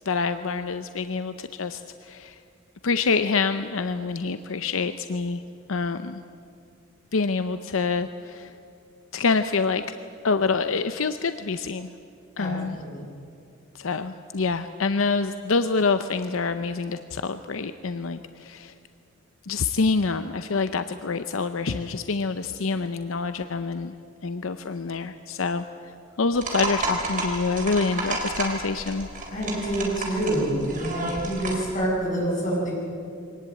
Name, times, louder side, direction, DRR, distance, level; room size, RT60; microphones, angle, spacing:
voice 1, 0.1-2.4 2.8-5.4 5.7-6.2 7.1-8.5 9.1-10.0 10.2-11.9 12.4-12.8 13.7-18.7 19.4-23.9 24.2-25.6 26.2-29.1, left 4 dB, 80° left, 10 dB, 0.7 m, -26 dB
voice 2, 12.4-13.0 29.3-32.7, right 1 dB, 40° left, -3 dB, 7.3 m, -27 dB
sound 1, 26.3-31.7, right 2 dB, 40° right, 4.1 m, -31 dB
23.5 x 18.5 x 8.5 m, 2.4 s
head